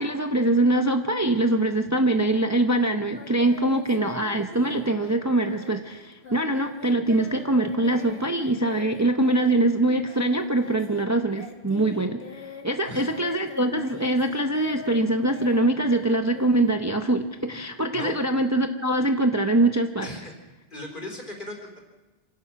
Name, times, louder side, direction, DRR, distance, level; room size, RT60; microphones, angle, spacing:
voice 1, 0.0-20.1, right 1 dB, 15° right, 5 dB, 0.8 m, -23 dB
Singing, 3.1-11.1 11.3-17.2, left 4 dB, 75° left, 2.3 m, -43 dB
voice 2, 20.0-20.3 20.7-21.8, left 1 dB, 50° left, 2 dB, 4.3 m, -37 dB
27.0 x 16.5 x 6.0 m, 1.1 s
omnidirectional pair, 1.1 m